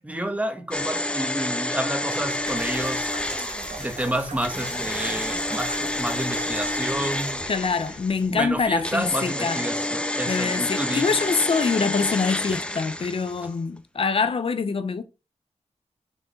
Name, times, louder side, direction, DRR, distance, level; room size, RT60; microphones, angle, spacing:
voice 1, 0.0-3.1 3.7-7.5 8.3-11.1 13.4-13.5, right 1 dB, 10° right, 1.1 m, -30 dB
sound 1, 0.7-8.3 8.8-13.5 13.8-13.9, left 1 dB, 10° left, 0.8 m, -29 dB
sound 2, 2.2-9.1, right 3 dB, 90° right, 2.4 m, -42 dB
voice 2, 7.5-9.6 10.3-15.0, left 5 dB, 50° left, 0.7 m, -25 dB
6.7 x 4.8 x 6.3 m
wide cardioid pair, 155°, 12 cm